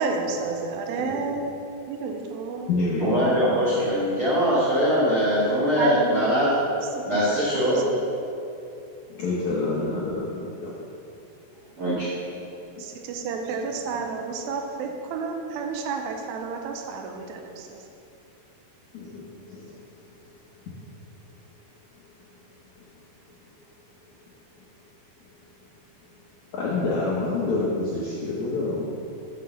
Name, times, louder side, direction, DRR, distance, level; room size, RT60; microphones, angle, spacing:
voice 1, 0.0-1.6 1.9-2.7 5.8-6.2 7.0-7.1 7.3-8.0 12.8-17.8, right 4 dB, 85° right, 3 dB, 2.2 m, -30 dB
voice 2, 1.0-1.3 2.7-3.7 9.1-10.7 12.8-12.9 18.9-19.7 26.5-28.9, left 2 dB, 90° left, -5 dB, 1.6 m, -28 dB
voice 3, 3.0-6.5 7.1-7.8 11.8-12.1, equal, 65° right, -10 dB, 1.3 m, -22 dB
6.4 x 6.1 x 6.7 m, 2.7 s
omnidirectional pair, 4.7 m